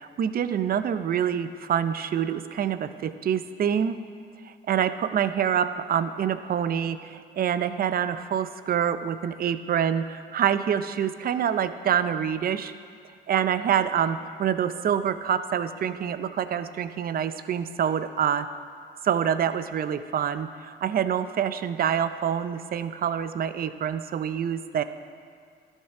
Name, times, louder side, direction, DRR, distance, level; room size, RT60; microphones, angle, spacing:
voice 1, 0.0-4.0 4.4-12.7 13.3-18.5 19.0-24.8, right 8 dB, 50° right, 12 dB, 0.5 m, -26 dB
12.5 x 5.5 x 5.9 m, 2.1 s
cardioid pair, 90°, 20 cm